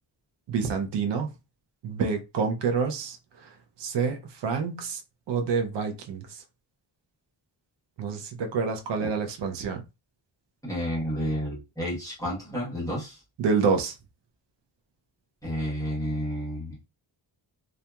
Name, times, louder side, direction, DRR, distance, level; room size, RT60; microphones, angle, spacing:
voice 1, 0.5-1.3 1.8-3.5 3.8-5.0 5.3-6.4 8.0-9.8 13.4-14.0, right 5 dB, 60° right, 0.5 m, -28 dB
voice 2, 10.6-13.2 15.4-16.9, equal, 5° left, 1.0 m, -31 dB
2.7 x 2.4 x 2.2 m
wide cardioid pair, 175°, 48 cm